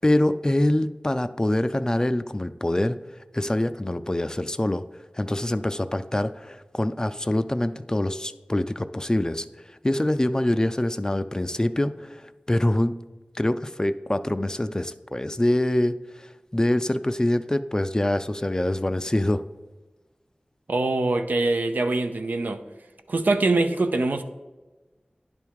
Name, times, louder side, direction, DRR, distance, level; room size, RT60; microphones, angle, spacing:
voice 1, 0.0-3.0 3.3-4.8 5.1-9.5 9.8-12.9 13.3-19.4, left 1 dB, 25° left, 12 dB, 0.3 m, -25 dB
voice 2, 20.7-22.6 23.1-24.2, right 2 dB, 85° right, 7 dB, 0.5 m, -23 dB
10.5 x 3.5 x 4.6 m, 1.2 s
wide cardioid pair, 60°, 3 cm